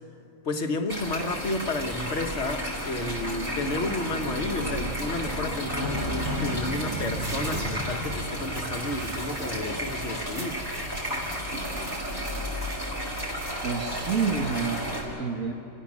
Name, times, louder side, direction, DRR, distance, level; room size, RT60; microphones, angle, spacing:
voice 1, 0.4-10.6, left 2 dB, 55° left, 4 dB, 1.6 m, -31 dB
sound 1, 0.9-15.0, equal, 40° right, 6.1 m, -32 dB
sound 2, 2.8-3.1 4.7-4.8 5.1-5.6 6.3-13.8, right 1 dB, 55° right, 2.7 m, -42 dB
voice 2, 13.6-15.5, right 5 dB, 80° right, 1 dB, 1.8 m, -29 dB
29.5 x 16.0 x 7.4 m, 2.9 s
omnidirectional pair, 1.4 m